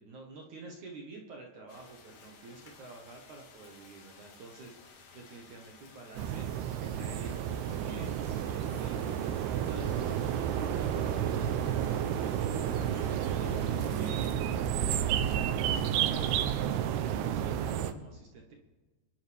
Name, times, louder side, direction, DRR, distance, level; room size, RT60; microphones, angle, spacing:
voice 1, 0.0-11.7 12.0-18.5, right 3 dB, 60° right, 0 dB, 2.1 m, -49 dB
sound 1, 1.7-14.3, left 5 dB, 80° left, 4.6 m, -55 dB
sound 2, 6.2-17.9, right 9 dB, 75° right, 2.4 m, -31 dB
sound 3, 9.8-16.3, left 8 dB, 20° right, 1.4 m, -51 dB
26.5 x 11.5 x 3.5 m, 1.3 s
omnidirectional pair, 5.3 m